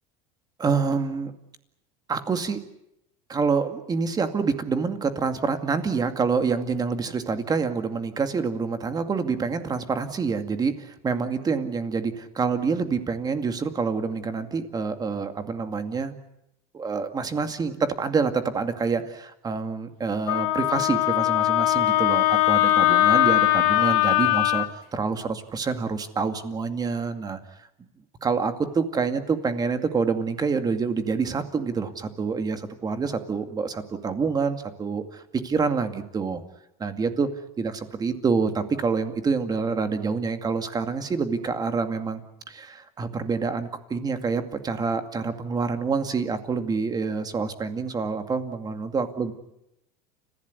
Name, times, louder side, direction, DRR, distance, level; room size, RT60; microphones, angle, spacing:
voice 1, 0.6-1.3 2.1-2.6 3.3-16.1 16.7-27.4 28.2-36.4 36.8-37.3 37.6-42.2 42.5-49.3, right 5 dB, 20° right, 7 dB, 2.3 m, -27 dB
Wind instrument woodwind instrument, 20.3-24.7, left 15 dB, 85° left, 2.0 m, -20 dB
29.5 x 15.5 x 9.6 m, 0.85 s
supercardioid pair, 140°, 18 cm